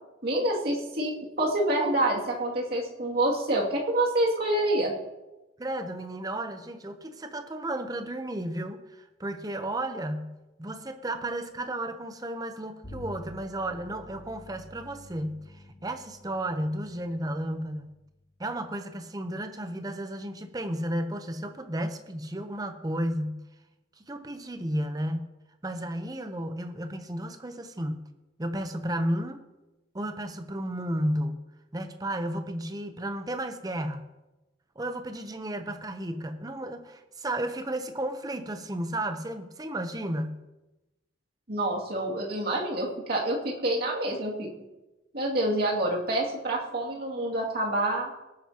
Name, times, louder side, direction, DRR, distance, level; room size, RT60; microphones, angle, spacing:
voice 1, 0.2-4.9 41.5-44.5 45.1-48.1, right 1 dB, 55° right, -2 dB, 2.4 m, -27 dB
voice 2, 5.6-10.3 10.6-17.9 18.4-23.4 24.1-25.3 25.6-28.0 28.4-29.4 29.9-31.4 31.7-34.1 34.8-40.4, right 1 dB, 20° right, 8 dB, 0.7 m, -33 dB
Bowed string instrument, 12.8-18.5, left 1 dB, 90° left, 4.8 m, -48 dB
18.5 x 9.2 x 2.9 m, 1.0 s
head